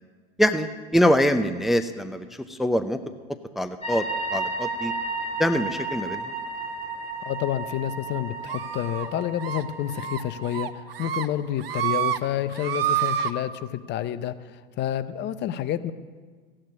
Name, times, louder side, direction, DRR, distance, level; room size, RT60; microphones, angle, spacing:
voice 1, 0.4-3.0 3.5-4.1 4.3-4.9 5.4-6.3, equal, ahead, 10 dB, 0.6 m, -24 dB
sound 1, 3.8-10.7, right 2 dB, 20° left, 4.1 m, -33 dB
voice 2, 7.3-15.9, left 11 dB, 35° left, 13 dB, 0.8 m, -29 dB
sound 2, 8.5-9.1 9.4-9.6 10.0-10.2 10.5-11.3 11.6-12.2 12.5-13.3, right 11 dB, 75° right, 0.9 m, -27 dB
15.5 x 8.8 x 9.5 m, 1.5 s
hypercardioid pair, 90°, 29 cm